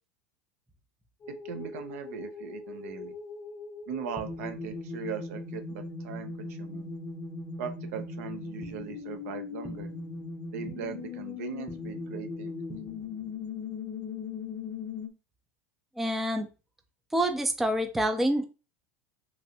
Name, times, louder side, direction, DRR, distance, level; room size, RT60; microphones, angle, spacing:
sound 1, 1.2-15.1, left 4 dB, 25° left, 0.7 m, -39 dB
voice 1, 1.3-3.1 3.9-6.9 7.6-9.9 10.5-12.6, right 7 dB, 75° right, 7 dB, 0.6 m, -39 dB
voice 2, 16.0-16.5 17.1-18.5, right 1 dB, 5° right, 6 dB, 0.4 m, -27 dB
3.0 x 2.5 x 2.8 m, 0.32 s
supercardioid pair, 125°, 8 cm